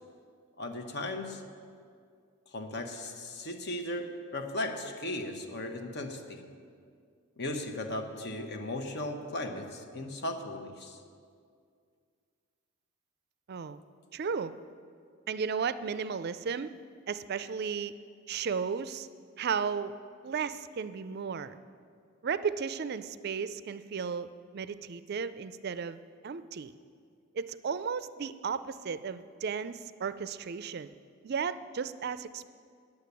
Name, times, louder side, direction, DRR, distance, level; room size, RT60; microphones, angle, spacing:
voice 1, 0.6-1.4 2.5-6.4 7.4-11.0, left 1 dB, 50° left, 5 dB, 1.0 m, -37 dB
voice 2, 13.5-13.8 14.1-14.5 15.3-16.7 17.1-17.9 18.3-19.1 19.4-20.0 20.2-21.6 22.2-24.3 24.5-26.0 26.2-26.7 27.3-30.9 31.2-32.5, right 6 dB, 50° right, 14 dB, 0.4 m, -34 dB
9.5 x 8.5 x 8.2 m, 2.2 s
head